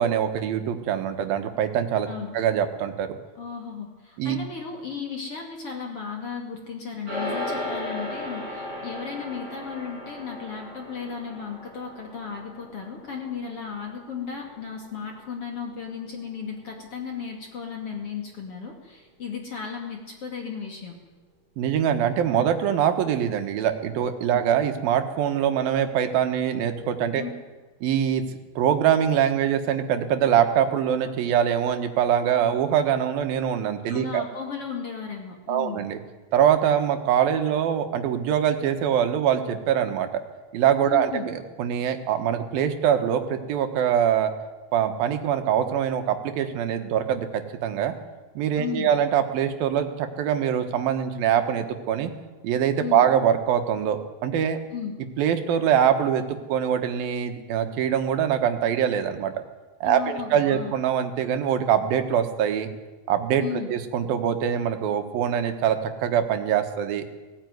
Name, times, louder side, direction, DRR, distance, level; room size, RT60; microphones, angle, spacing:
voice 1, 0.0-2.1 2.3-3.1 4.2-4.4 21.6-27.2 27.8-28.2 28.6-34.2 35.5-36.0 36.3-40.2 40.5-44.3 44.7-47.9 48.4-52.1 52.4-54.6 55.2-56.2 56.5-59.3 59.8-62.7 63.1-67.0, right 9 dB, 75° right, 7 dB, 3.2 m, -23 dB
voice 2, 3.3-20.9 24.3-24.4 27.2-27.3 33.9-35.8 40.8-41.3 48.5-48.9 52.8-53.1 54.7-54.9 59.8-60.7 63.4-63.7, left 6 dB, 40° left, 1 dB, 2.9 m, -35 dB
sound 1, 7.1-16.6, left 1 dB, 20° right, 8.4 m, -37 dB
19.0 x 16.5 x 9.5 m, 1.2 s
omnidirectional pair, 4.3 m